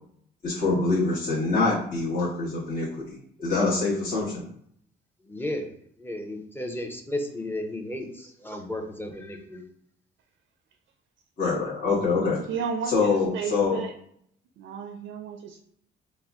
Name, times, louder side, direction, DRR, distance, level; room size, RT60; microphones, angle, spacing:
voice 1, 0.4-4.4 11.4-12.4 12.9-13.8, left 3 dB, 45° left, -7 dB, 1.1 m, -25 dB
voice 2, 5.3-5.7 6.0-9.6, left 1 dB, 10° left, 4 dB, 0.6 m, -33 dB
voice 3, 8.2-8.6 12.5-13.9 14.6-15.6, right 6 dB, 80° right, 4 dB, 0.4 m, -34 dB
4.3 x 2.1 x 3.5 m, 0.67 s
cardioid pair, 90°, 20 cm